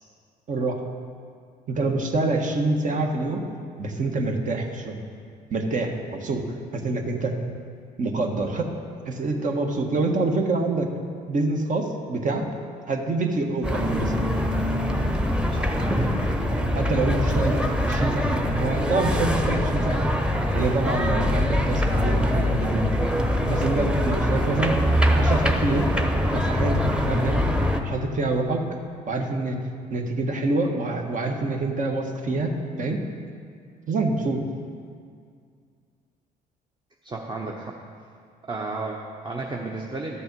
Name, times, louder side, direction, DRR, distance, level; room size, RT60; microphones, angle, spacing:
voice 1, 0.5-0.8 1.7-3.4 3.8-5.0 5.5-6.5 6.7-7.3 8.0-8.7 9.0-10.9 11.3-12.5 12.9-14.2 16.7-20.1 20.5-22.9 23.5-24.8 25.1-25.9 26.3-27.4 27.8-28.7 29.1-29.6 29.9-33.0 33.9-34.4, right 2 dB, 50° right, 3 dB, 1.5 m, -26 dB
sound 1, 13.6-27.8, equal, 5° right, 1.0 m, -23 dB
voice 2, 37.0-37.8 38.4-40.2, right 3 dB, 25° right, 0 dB, 1.0 m, -33 dB
12.5 x 6.8 x 5.4 m, 2.2 s
supercardioid pair, 80°, 17 cm